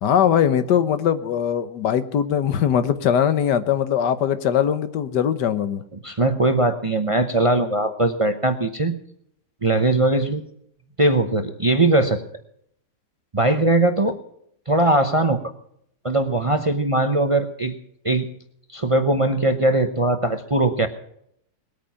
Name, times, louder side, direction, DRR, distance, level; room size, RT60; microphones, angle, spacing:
voice 1, 0.0-5.8, left 9 dB, 90° left, 12 dB, 1.6 m, -21 dB
voice 2, 6.0-8.9 9.6-10.4 11.0-12.2 13.3-14.2 14.7-15.4 16.0-17.7 18.0-18.3 18.7-20.9, right 2 dB, 25° right, 8 dB, 0.7 m, -20 dB
20.5 x 9.1 x 5.7 m, 0.71 s
omnidirectional pair, 1.8 m